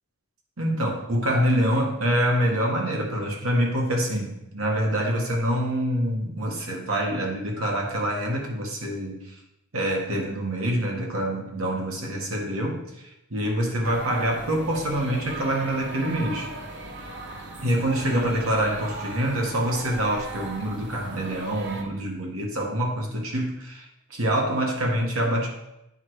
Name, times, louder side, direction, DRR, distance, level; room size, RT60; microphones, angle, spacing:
voice 1, 0.6-9.4 9.7-16.5 17.6-25.5, equal, 80° right, 0 dB, 1.8 m, -26 dB
sound 1, 13.8-21.8, right 2 dB, 55° right, 1.2 m, -38 dB
8.8 x 5.0 x 4.7 m, 0.87 s
head